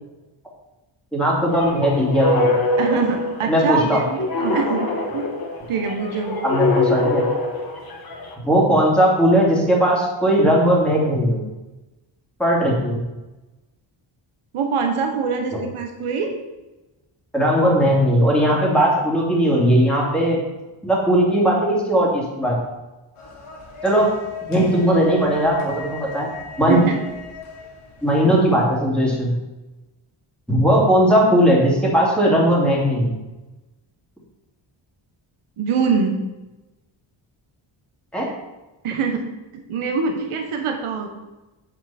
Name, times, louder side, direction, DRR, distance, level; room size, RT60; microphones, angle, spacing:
voice 1, 1.1-2.5 3.5-4.0 6.4-7.2 8.4-11.4 12.4-13.0 17.3-20.4 20.8-22.6 23.8-24.1 24.5-26.8 28.0-29.3 30.5-33.1 38.1-38.3, equal, ahead, -4 dB, 2.7 m, -18 dB
sound 1, 1.5-8.3, left 2 dB, 45° left, 1.6 m, -24 dB
voice 2, 2.8-5.3 5.7-6.4 14.5-16.3 26.7-26.9 35.6-36.1 38.8-39.2 39.5-41.1, right 5 dB, 80° right, 3 dB, 1.3 m, -23 dB
sound 2, 23.1-28.7, left 3 dB, 75° left, 2.4 m, -37 dB
7.9 x 7.6 x 4.4 m, 1.1 s
wide cardioid pair, 130°, 50 cm